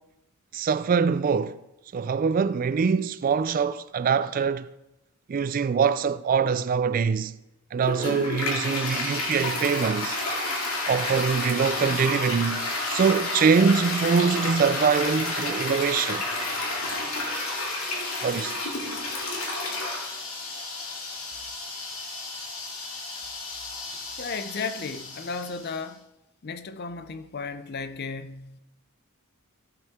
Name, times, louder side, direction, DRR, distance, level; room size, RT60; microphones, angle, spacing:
voice 1, 0.5-1.6 1.9-4.7 5.3-7.4 7.7-10.2 10.9-16.2 18.2-18.6, right 6 dB, 40° right, 0.3 m, -24 dB
Toilet flush, 7.8-25.8, left 2 dB, 70° left, 2.4 m, -31 dB
voice 2, 24.2-26.1 26.4-28.6, left 4 dB, 45° left, 0.5 m, -34 dB
14.5 x 7.8 x 3.6 m
head